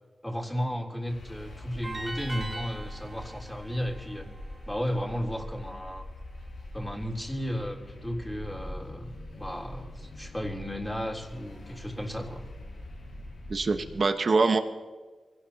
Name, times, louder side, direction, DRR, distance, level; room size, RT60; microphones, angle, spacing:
voice 1, 0.2-4.3 4.7-6.0 6.7-12.4, equal, 10° left, -1 dB, 3.5 m, -34 dB
sound 1, 1.1-14.0, left 1 dB, 90° left, 5.4 m, -43 dB
sound 2, 1.8-5.0, right 2 dB, 30° right, 4.2 m, -41 dB
voice 2, 13.5-14.6, right 3 dB, 60° right, 7 dB, 1.3 m, -24 dB
24.5 x 18.0 x 2.9 m, 1.4 s
cardioid pair, 50°, 0 cm